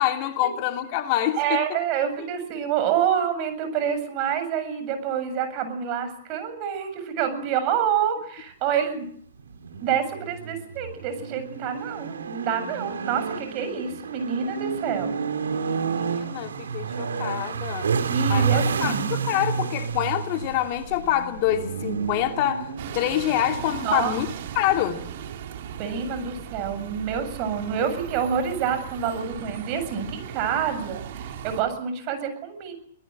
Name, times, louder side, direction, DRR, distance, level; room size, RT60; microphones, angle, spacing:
voice 1, 0.0-1.6 15.6-17.9 18.3-24.3 24.6-25.0, left 12 dB, 45° left, 5 dB, 2.5 m, -26 dB
voice 2, 1.4-9.1 9.8-15.1 18.0-19.1 23.8-24.1 25.8-32.7, right 8 dB, 40° right, 9 dB, 7.5 m, -27 dB
sound 1, 9.4-26.0, right 6 dB, 80° right, 3.1 m, -30 dB
Bus, 22.8-31.6, right 9 dB, 55° right, 3.6 m, -38 dB
25.5 x 19.0 x 7.6 m, 0.62 s
hypercardioid pair, 125°, 0 cm